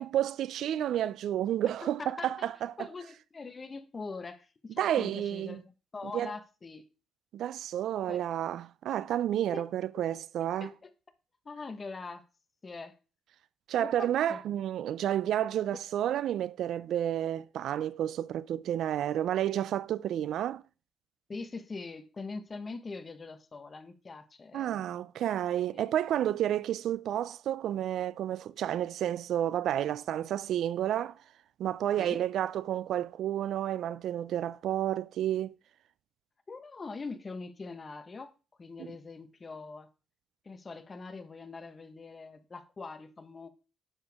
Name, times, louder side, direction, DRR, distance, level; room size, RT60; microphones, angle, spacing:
voice 1, 0.0-2.9 4.8-5.6 6.1-6.3 7.3-10.7 13.7-20.6 24.5-31.2 31.6-35.5 38.8-38.9, right 11 dB, 75° right, 0.3 m, -31 dB
voice 2, 1.8-2.5 2.8-6.9 8.1-8.2 9.5-9.7 9.9-10.1 10.4-10.9 11.4-12.2 12.6-13.0 13.8-14.4 21.3-24.8 25.7-25.8 32.0-32.2 36.5-38.3 38.6-39.9 40.4-43.5, left 4 dB, 30° left, 1.1 m, -43 dB
9.8 x 6.9 x 3.5 m
cardioid pair, 90°, 0 cm